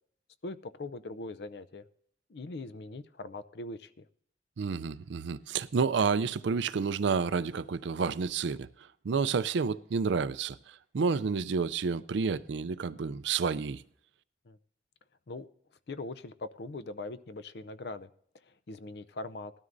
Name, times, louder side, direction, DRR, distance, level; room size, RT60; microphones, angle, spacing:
voice 1, 0.4-1.8 2.3-4.0 14.5-14.6 15.3-15.5 15.9-18.1 18.5-19.5, left 2 dB, 60° left, 0.5 m, -41 dB
voice 2, 4.6-8.7 9.0-10.6 10.9-13.8, right 5 dB, 70° right, 0.4 m, -30 dB
19.5 x 12.5 x 2.6 m
head